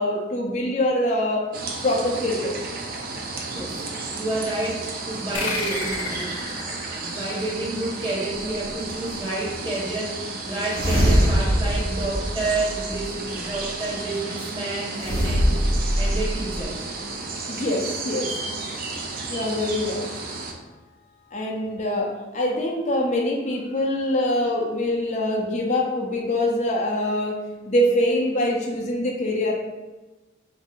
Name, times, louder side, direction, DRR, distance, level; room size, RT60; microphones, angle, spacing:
voice 1, 0.0-1.5 1.8-2.6 17.5-18.3 19.3-20.1 21.3-27.4 27.7-29.5, left 1 dB, 35° left, -1 dB, 0.5 m, -24 dB
sound 1, 1.5-20.5, right 3 dB, 50° right, 0.5 m, -33 dB
voice 2, 3.5-3.8 4.1-15.5 16.0-16.7, right 2 dB, 25° right, -6 dB, 1.0 m, -30 dB
sound 2, 5.3-8.4, left 3 dB, 80° left, 0.7 m, -32 dB
sound 3, 10.7-13.1 15.0-16.6, equal, 75° right, 1.3 m, -22 dB
5.2 x 2.6 x 2.4 m, 1.1 s
head